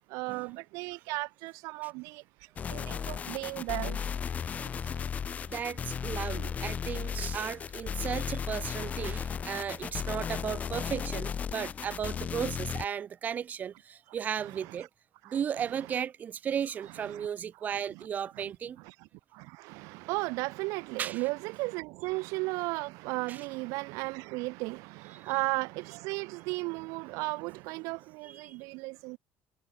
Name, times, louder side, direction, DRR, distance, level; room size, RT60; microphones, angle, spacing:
voice 1, 0.1-2.2 2.7-4.0 14.4-14.9 15.2-15.4 17.1-17.3 17.7-18.1 18.3-18.4 18.8-29.2, right 25 dB, 90° right, 0.8 m, -35 dB
sound 1, 2.6-12.8, left 7 dB, 30° left, 1.8 m, -35 dB
voice 2, 5.4-14.9 15.3-18.8 21.0-21.2 23.3-23.4 25.2-25.3 28.2-28.5, right 8 dB, 30° right, 1.1 m, -35 dB
cardioid pair, 160°, 5 cm